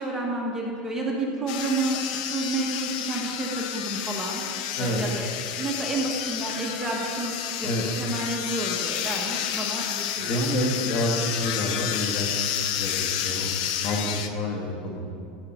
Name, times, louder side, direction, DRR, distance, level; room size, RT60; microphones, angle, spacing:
voice 1, 0.0-2.0 2.3-5.3 5.6-10.5 11.1-11.3, right 2 dB, 10° right, -2 dB, 1.1 m, -30 dB
sound 1, 1.5-14.3, left 10 dB, 70° left, 0.6 m, -30 dB
voice 2, 10.2-11.1 11.4-12.3 12.7-15.1, left 1 dB, 45° left, 0 dB, 1.6 m, -28 dB
13.5 x 5.3 x 4.2 m, 2.5 s
supercardioid pair, 140°, 4 cm